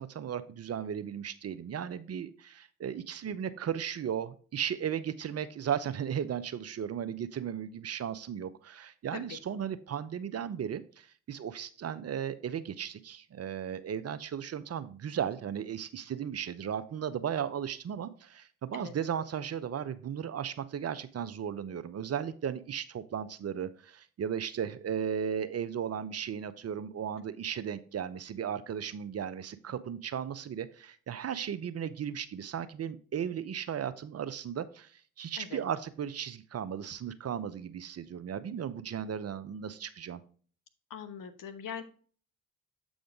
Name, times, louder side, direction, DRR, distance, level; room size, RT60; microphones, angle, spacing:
voice 1, 0.0-34.9 35.2-40.2, right 8 dB, 45° right, 14 dB, 0.7 m, -36 dB
voice 2, 40.9-41.8, left 7 dB, 65° left, 8 dB, 1.0 m, -41 dB
7.8 x 5.1 x 3.6 m, 0.42 s
hypercardioid pair, 45°, 36 cm